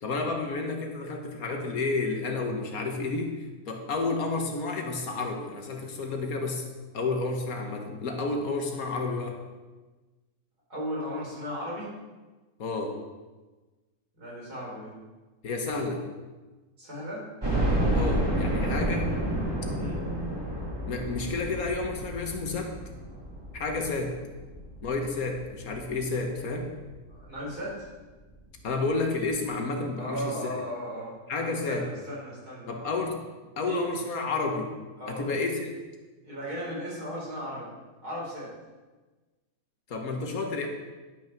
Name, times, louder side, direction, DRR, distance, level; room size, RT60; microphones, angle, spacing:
voice 1, 0.0-3.3 3.7-6.7 6.9-9.4 12.6-13.0 15.4-16.0 17.9-19.1 20.9-22.7 23.5-24.1 24.8-26.7 28.6-30.6 31.3-31.9 32.7-33.2 33.6-34.7 35.1-35.7 39.9-40.7, left 3 dB, 70° left, 3 dB, 1.7 m, -30 dB
voice 2, 10.7-11.9 14.2-15.0 16.8-17.2 19.8-20.0 27.1-27.9 30.0-31.1 31.4-32.7 33.7-33.9 35.0-35.3 36.2-37.7 38.0-38.5, equal, 80° right, -6 dB, 4.7 m, -36 dB
sound 1, 17.4-26.3 26.8-26.9 27.3-27.4 28.6-28.7 28.9-29.0, right 1 dB, 15° right, 2.1 m, -30 dB
11.0 x 6.2 x 5.9 m, 1.2 s
omnidirectional pair, 1.6 m